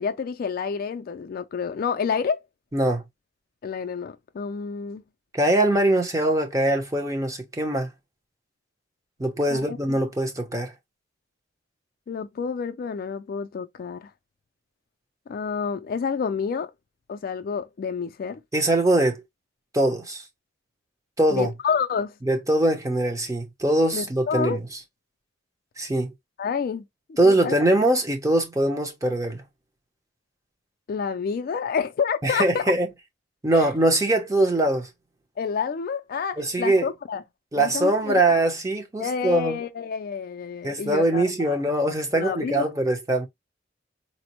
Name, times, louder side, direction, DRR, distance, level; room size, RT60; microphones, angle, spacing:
voice 1, 0.0-2.4 3.6-5.0 9.5-9.8 12.1-14.1 15.3-16.7 17.1-18.4 21.3-22.1 23.9-24.6 26.4-27.6 30.9-32.6 33.5-33.7 35.4-37.2 37.6-38.2 39.0-41.6 42.1-42.7, left 6 dB, 50° left, 0.3 m, -29 dB
voice 2, 2.7-3.0 5.3-7.9 9.2-10.7 18.5-19.2 19.7-20.2 21.2-21.5 22.3-24.6 25.8-26.1 27.2-29.4 32.2-32.9 33.4-34.9 36.4-36.8 37.5-39.6 40.6-43.3, right 1 dB, 15° right, 0.7 m, -22 dB
4.1 x 2.0 x 2.9 m
head